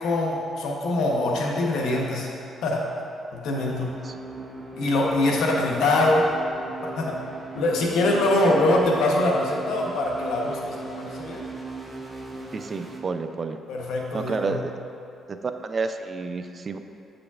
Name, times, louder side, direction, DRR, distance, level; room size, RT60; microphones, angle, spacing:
voice 1, 0.0-2.3 2.6-2.9 3.3-3.9 4.8-6.3 6.8-7.2 7.5-11.4 13.7-14.6, left 2 dB, 80° left, -1 dB, 0.9 m, -23 dB
sound 1, 3.7-13.0, right 2 dB, 15° right, 0.8 m, -39 dB
voice 2, 12.5-13.6 14.1-14.7 15.3-16.8, right 4 dB, 40° right, 8 dB, 0.3 m, -30 dB
7.9 x 5.0 x 2.4 m, 2.7 s
cardioid pair, 90°, 0 cm